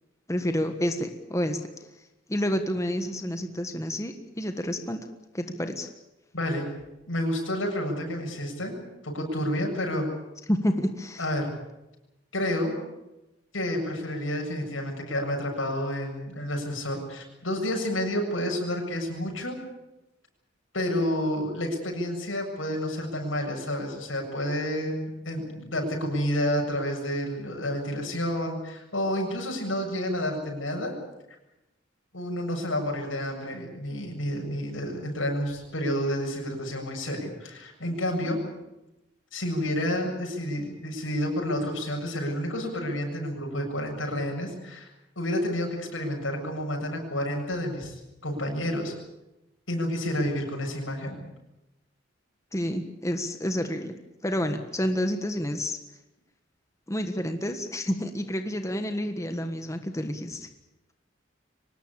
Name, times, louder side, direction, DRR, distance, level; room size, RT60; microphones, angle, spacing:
voice 1, 0.3-1.6 2.3-5.1 5.3-5.9 10.5-11.2 52.5-53.9 54.2-55.8 56.9-60.5, equal, 15° left, 6 dB, 1.4 m, -29 dB
voice 2, 6.3-6.7 7.1-10.1 11.2-11.5 12.3-12.7 13.5-19.6 20.7-30.9 32.1-38.4 39.3-44.9 45.2-48.9 49.7-51.2, left 1 dB, 85° left, 2 dB, 7.5 m, -30 dB
24.0 x 19.5 x 8.6 m, 0.97 s
head